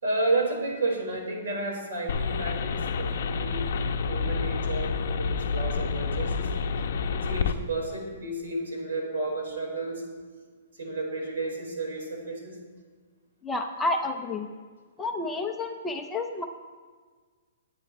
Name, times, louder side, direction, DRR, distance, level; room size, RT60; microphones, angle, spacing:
voice 1, 0.0-3.7 4.1-6.5 7.3-10.0 10.7-12.6, right 2 dB, 80° right, -1 dB, 4.6 m, -31 dB
sound 1, 2.1-7.5, left 5 dB, 45° left, 0.8 m, -28 dB
voice 2, 13.4-14.5 15.0-16.4, left 2 dB, 5° left, 3 dB, 0.5 m, -30 dB
21.5 x 9.6 x 3.1 m, 1.5 s
hypercardioid pair, 175°, 0 cm